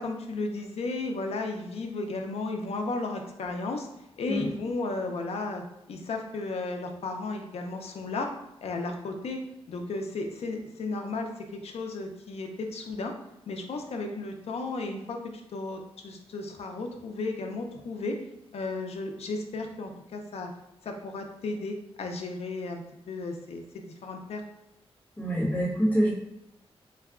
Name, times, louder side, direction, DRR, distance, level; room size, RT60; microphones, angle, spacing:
voice 1, 0.0-3.9 4.2-8.3 8.6-13.1 13.5-15.2 15.5-18.2 18.5-20.5 20.8-22.8 23.1-24.4, left 3 dB, 85° left, 4 dB, 0.6 m, -34 dB
voice 2, 25.2-26.1, equal, 15° left, -4 dB, 1.1 m, -25 dB
3.9 x 2.2 x 3.5 m, 0.85 s
wide cardioid pair, 130°, 10 cm